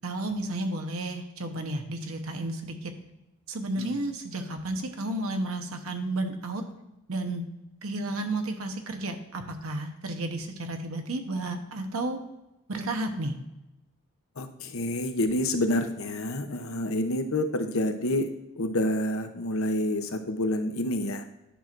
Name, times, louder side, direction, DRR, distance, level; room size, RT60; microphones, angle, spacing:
voice 1, 0.0-2.9 3.5-6.6 7.1-7.5 7.8-12.2 12.7-13.4, right 2 dB, 85° right, 6 dB, 1.0 m, -32 dB
voice 2, 14.4-18.3 18.6-21.2, left 1 dB, 75° left, 7 dB, 0.8 m, -28 dB
10.0 x 5.9 x 2.5 m, 0.93 s
head